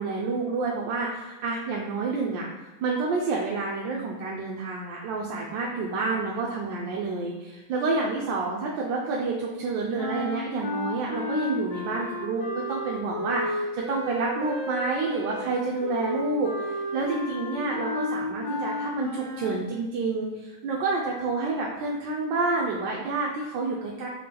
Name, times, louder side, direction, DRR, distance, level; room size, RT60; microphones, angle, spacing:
voice 1, 0.0-2.5 2.8-24.1, right 3 dB, 70° right, -2 dB, 1.2 m, -29 dB
sound 1, 10.0-19.6, left 1 dB, 65° left, 1.3 m, -33 dB
4.2 x 3.7 x 3.3 m, 1.2 s
omnidirectional pair, 2.3 m